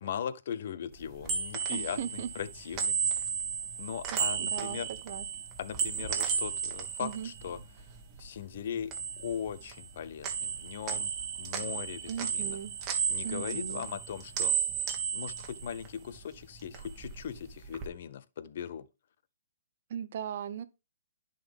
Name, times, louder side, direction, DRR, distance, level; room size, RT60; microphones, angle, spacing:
voice 1, 0.0-3.2 3.8-4.9 5.6-7.6 8.2-8.9 9.2-11.1 11.4-12.6 13.1-14.5 15.1-18.9, left 8 dB, 55° left, 0.6 m, -39 dB
sound 1, 0.9-8.3 8.6-10.0 10.2-16.2 16.5-17.9, right 7 dB, 25° right, 1.3 m, -34 dB
voice 2, 1.7-2.3 4.1-5.3 7.0-7.3 12.1-12.7 13.2-13.9 19.9-20.6, right 9 dB, 50° right, 0.7 m, -38 dB
10.5 x 3.9 x 3.5 m
hypercardioid pair, 135°, 0 cm